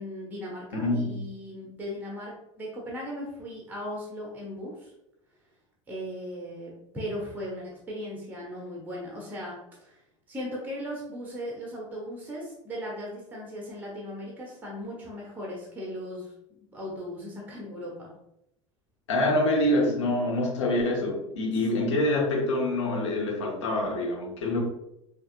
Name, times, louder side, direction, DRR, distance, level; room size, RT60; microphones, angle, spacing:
voice 1, 0.0-4.9 5.9-10.0 10.3-16.3 16.7-18.1 21.8-21.9, equal, 10° right, -3 dB, 1.1 m, -37 dB
voice 2, 0.8-1.2 19.1-24.6, left 1 dB, 65° left, -1 dB, 1.2 m, -26 dB
6.3 x 2.7 x 2.4 m, 0.81 s
figure-of-eight pair, 75°, 16 cm